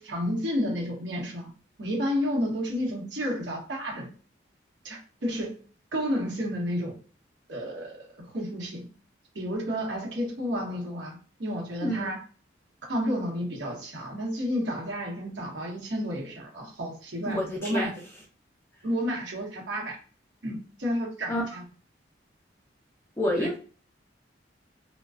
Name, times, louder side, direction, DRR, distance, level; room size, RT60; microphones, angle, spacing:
voice 1, 0.0-1.5 1.8-4.1 4.8-5.5 5.9-7.0 7.5-8.8 9.3-12.2 12.9-18.0 18.8-20.0 20.4-21.6 23.4-23.5, equal, 70° right, -2 dB, 0.9 m, -31 dB
voice 2, 17.3-17.9 21.3-21.4 23.2-23.6, left 1 dB, 15° left, -1 dB, 0.4 m, -28 dB
2.4 x 2.2 x 2.4 m, 0.40 s
head